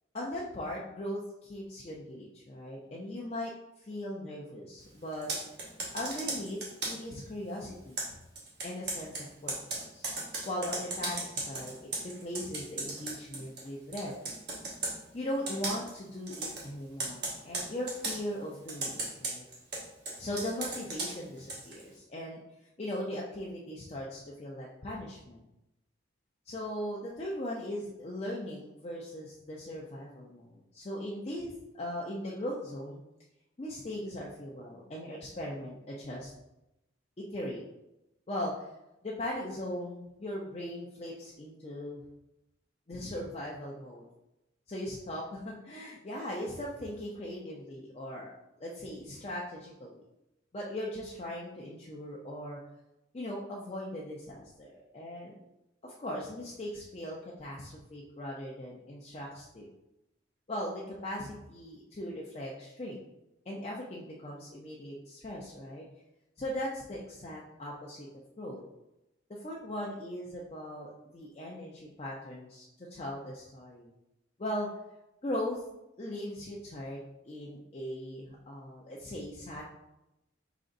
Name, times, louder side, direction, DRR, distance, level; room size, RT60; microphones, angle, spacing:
voice 1, 0.1-5.3 5.9-6.6 6.8-8.0 8.6-9.6 9.9-10.0 10.5-11.7 12.0-14.1 15.1-19.4 20.2-22.4 22.8-25.4 26.5-33.0 33.6-36.3 37.3-37.6 38.3-38.7 39.0-42.0 42.9-44.0 44.7-48.3 48.6-50.0 50.5-52.6 53.1-55.4 55.8-59.7 60.5-63.0 63.5-65.9 66.4-68.1 68.4-68.6 69.3-73.9 74.4-74.7 75.2-75.6 76.0-77.0 77.2-79.6, left 1 dB, 30° left, -4 dB, 0.5 m, -39 dB
Computer keyboard, 5.1-7.1 8.0-13.7 13.9-15.0 15.5-15.9 16.3-16.7 17.0-18.2 18.7-21.8, right 2 dB, 55° right, 1.1 m, -36 dB
5.0 x 3.8 x 2.5 m, 0.91 s
head